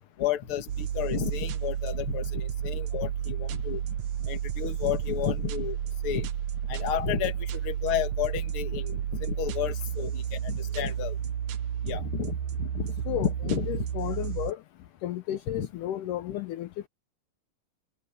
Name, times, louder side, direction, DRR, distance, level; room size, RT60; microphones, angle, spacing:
voice 1, 0.2-3.8 4.3-5.8 6.0-6.3 6.7-7.3 7.6-11.1 11.8-13.9 15.5-15.7, left 10 dB, 45° left, 2.1 m, -32 dB
sound 1, 0.7-14.5, right 9 dB, 70° right, 1.9 m, -32 dB
voice 2, 13.1-14.6 15.0-16.9, left 13 dB, 75° left, 2.2 m, -33 dB
omnidirectional pair, 4.0 m